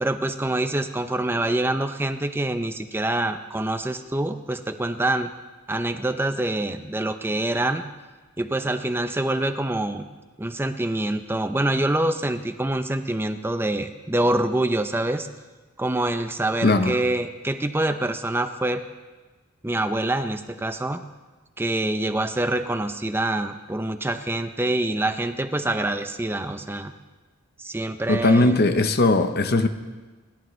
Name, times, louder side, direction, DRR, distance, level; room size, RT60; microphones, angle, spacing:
voice 1, 0.0-5.3 5.7-7.8 8.4-10.1 10.4-15.3 15.8-18.8 19.6-21.0 21.6-26.9 27.6-28.6, right 1 dB, 10° right, 9 dB, 0.5 m, -25 dB
voice 2, 16.6-16.9 28.1-29.7, left 2 dB, 50° left, 9 dB, 0.8 m, -19 dB
28.5 x 11.5 x 3.2 m, 1.3 s
head